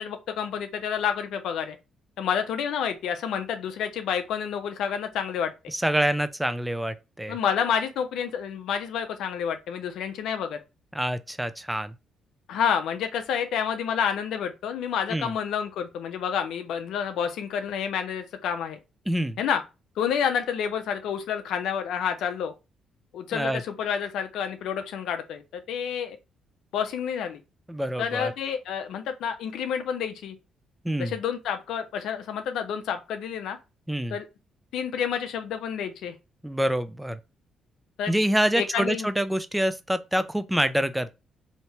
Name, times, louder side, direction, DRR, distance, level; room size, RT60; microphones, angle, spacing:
voice 1, 0.0-1.8 2.2-5.5 7.3-10.6 12.5-18.8 19.4-19.6 20.0-22.5 23.1-26.2 26.7-27.4 28.0-30.4 31.0-33.6 34.1-34.2 34.7-36.1 38.0-38.1 38.5-39.1, left 8 dB, 80° left, 0.5 m, -29 dB
voice 2, 5.7-7.4 10.9-11.9 15.1-15.3 19.1-19.4 23.3-23.6 27.7-28.3 30.8-31.1 33.9-34.2 36.4-37.2 38.1-41.1, right 1 dB, 5° right, 0.4 m, -26 dB
3.2 x 2.8 x 2.8 m
cardioid pair, 90°, 0 cm